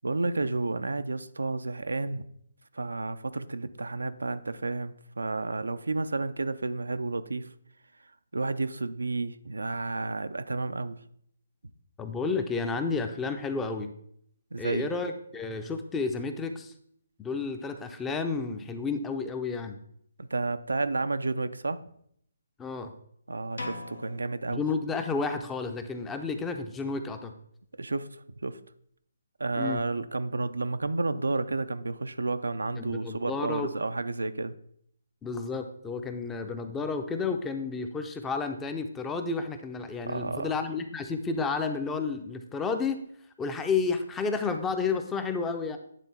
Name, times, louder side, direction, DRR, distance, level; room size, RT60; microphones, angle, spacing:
voice 1, 0.0-2.2 2.7-7.5 8.3-11.0 14.5-14.9 20.2-21.8 23.3-24.6 27.8-28.6 29.4-34.5 40.1-40.6, right 3 dB, 85° right, 11 dB, 0.4 m, -31 dB
voice 2, 12.0-13.9 14.6-16.7 17.2-19.8 22.6-22.9 24.5-27.3 29.5-29.8 32.8-33.7 35.2-43.0 43.4-45.8, left 4 dB, 10° left, 8 dB, 0.5 m, -31 dB
sound 1, 23.6-25.5, left 2 dB, 75° left, 0.9 m, -42 dB
9.1 x 3.7 x 4.1 m, 0.69 s
figure-of-eight pair, 150°, 0 cm